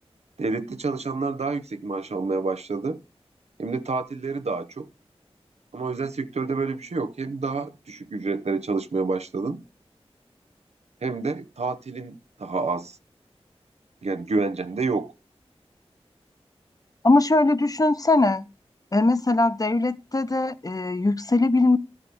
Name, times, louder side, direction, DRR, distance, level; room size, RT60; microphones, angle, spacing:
voice 1, 0.4-3.0 3.6-4.9 5.7-9.6 11.0-13.0 14.0-15.1, right 3 dB, 85° right, 0.9 m, -28 dB
voice 2, 17.0-18.5 18.9-21.8, left 2 dB, 35° left, 0.7 m, -21 dB
13.0 x 4.9 x 6.9 m
wide cardioid pair, 70°, 11 cm